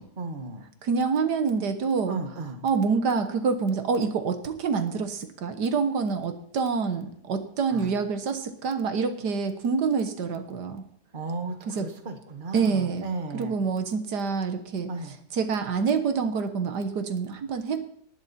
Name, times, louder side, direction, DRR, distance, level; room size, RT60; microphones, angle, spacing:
voice 1, 0.0-0.6 2.1-2.6 7.7-7.9 11.1-13.5 14.9-15.1, right 3 dB, 30° right, 6 dB, 1.6 m, -35 dB
voice 2, 0.8-2.2 2.6-10.8 11.7-11.9 12.5-13.0 13.3-17.8, right 5 dB, 75° right, 9 dB, 1.8 m, -27 dB
19.0 x 11.5 x 4.3 m, 0.67 s
omnidirectional pair, 1.8 m